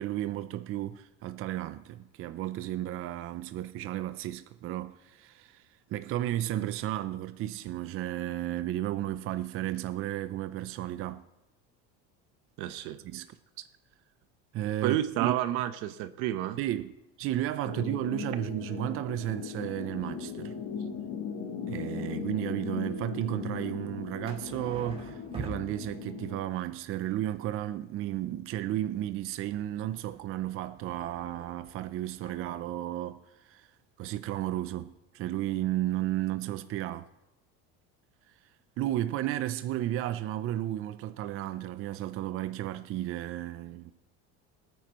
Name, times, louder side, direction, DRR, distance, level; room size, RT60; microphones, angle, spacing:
voice 1, 0.0-11.2 13.0-13.3 14.5-15.3 16.6-16.9 17.2-20.5 21.7-33.7 34.0-37.0 38.8-43.9, right 13 dB, 45° right, 0.5 m, -33 dB
voice 2, 12.6-13.0 14.8-16.6, right 13 dB, 80° right, 0.9 m, -30 dB
sound 1, 17.6-26.4, left 6 dB, 55° left, 1.7 m, -38 dB
sound 2, 24.2-26.4 29.3-32.5 34.3-34.4 34.6-34.8, right 1 dB, 20° right, 2.6 m, -47 dB
20.0 x 9.2 x 3.0 m
cardioid pair, 125°, 30 cm